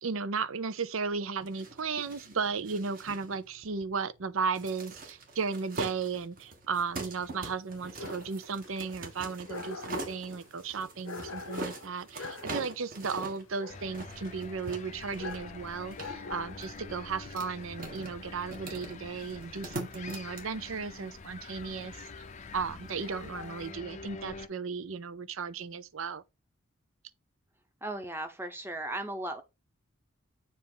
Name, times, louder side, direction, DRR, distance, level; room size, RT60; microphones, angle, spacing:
voice 1, 0.0-22.1 22.5-26.2, right 5 dB, 75° right, 0.6 m, -35 dB
sound 1, 1.4-20.4, right 2 dB, 40° right, 1.5 m, -44 dB
Dog, 7.7-23.7, left 4 dB, 80° left, 0.7 m, -47 dB
sound 2, 13.7-24.5, left 4 dB, 35° left, 0.5 m, -46 dB
voice 2, 27.8-29.4, right 1 dB, 10° right, 0.8 m, -36 dB
7.4 x 2.6 x 5.5 m
head